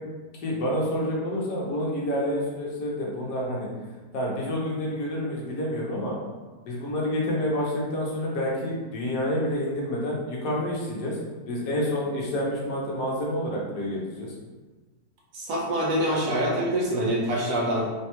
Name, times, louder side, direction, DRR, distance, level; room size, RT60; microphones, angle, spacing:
voice 1, 0.4-3.7 4.1-6.1 6.7-11.2 11.5-14.3, equal, 85° left, -3 dB, 1.4 m, -28 dB
voice 2, 15.3-17.9, right 1 dB, 85° right, -4 dB, 1.4 m, -25 dB
3.8 x 2.2 x 2.9 m, 1.3 s
omnidirectional pair, 1.8 m